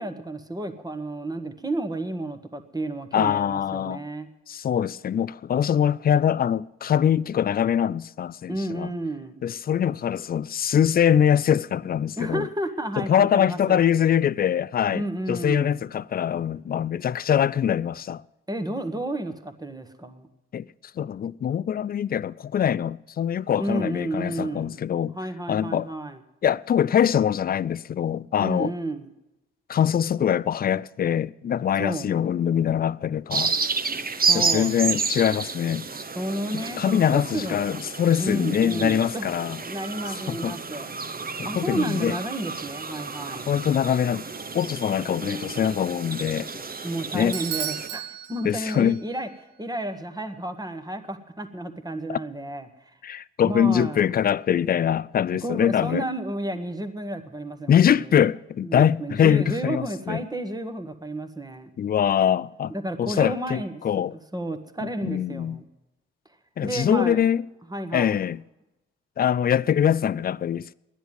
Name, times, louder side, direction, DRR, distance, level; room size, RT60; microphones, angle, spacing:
voice 1, 0.0-4.3 8.5-9.4 12.2-13.8 14.9-15.8 18.5-20.3 23.6-24.8 25.1-26.2 28.4-29.1 31.8-32.2 34.3-34.8 36.1-37.8 38.2-39.3 39.6-40.9 41.4-43.5 46.8-49.3 49.6-52.7 53.4-54.1 55.4-58.2 58.6-61.7 62.7-63.8 64.1-65.6 66.6-67.3 67.7-68.2, right 1 dB, 10° right, 1.6 m, -31 dB
voice 2, 3.1-4.0 4.5-8.9 9.4-12.4 13.0-15.0 15.3-18.2 20.5-20.7 21.0-25.1 25.5-25.9 26.4-28.7 29.7-33.6 34.3-35.9 36.5-39.6 40.3-40.6 41.4-42.2 43.5-44.3 44.5-46.5 47.1-47.4 48.4-49.0 52.1-52.2 53.0-56.0 57.7-60.2 61.8-62.7 63.0-64.1 65.0-65.6 66.6-67.4 67.9-68.4 69.2-70.7, left 9 dB, 30° left, 0.4 m, -23 dB
sound 1, 33.3-47.9, right 4 dB, 30° right, 1.0 m, -31 dB
Bell / Doorbell, 47.3-49.2, right 10 dB, 85° right, 0.7 m, -34 dB
11.0 x 10.0 x 9.3 m
hypercardioid pair, 40°, 31 cm